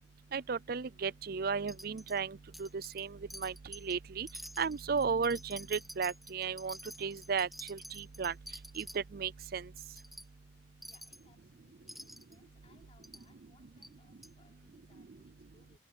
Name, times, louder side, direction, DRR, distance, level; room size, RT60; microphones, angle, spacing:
voice 1, 0.3-4.3 4.6-8.3 8.8-9.6, right 5 dB, 60° right, 0.5 m, -35 dB
Wind chime, 1.7-2.2 2.5-3.0 3.3-3.9 4.3-9.0 9.4-9.5 9.8-10.3 10.8-11.2 11.9-12.3 13.0-13.2 13.8-13.9 14.2-14.3, equal, ahead, 1.7 m, -49 dB
voice 2, 10.8-15.8, left 2 dB, 35° left, 5.0 m, -68 dB
head